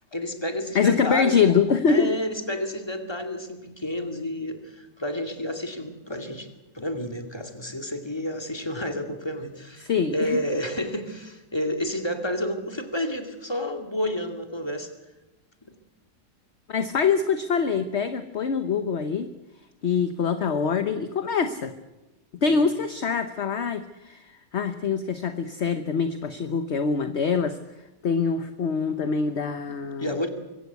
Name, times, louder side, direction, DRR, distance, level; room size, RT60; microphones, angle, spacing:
voice 1, 0.1-1.6 1.9-6.5 6.7-14.9 22.4-22.7 30.0-30.3, left 1 dB, 15° left, 6 dB, 2.3 m, -30 dB
voice 2, 0.7-2.2 9.8-10.4 16.7-19.3 19.8-21.7 22.4-27.6 28.0-30.1, left 5 dB, 45° left, 10 dB, 1.1 m, -24 dB
24.0 x 16.5 x 8.2 m, 1.1 s
omnidirectional pair, 1.9 m